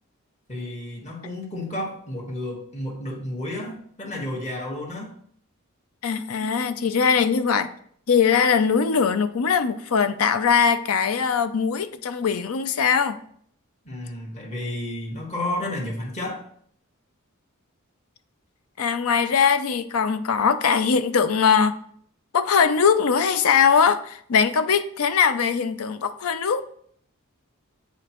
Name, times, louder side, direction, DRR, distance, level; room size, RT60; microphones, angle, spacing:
voice 1, 0.5-5.1 13.8-16.4, left 1 dB, 30° left, -1 dB, 1.4 m, -31 dB
voice 2, 6.0-7.7 8.1-13.2 18.8-21.8 22.3-26.6, left 6 dB, 85° left, 12 dB, 0.5 m, -21 dB
8.3 x 5.0 x 3.0 m, 0.62 s
head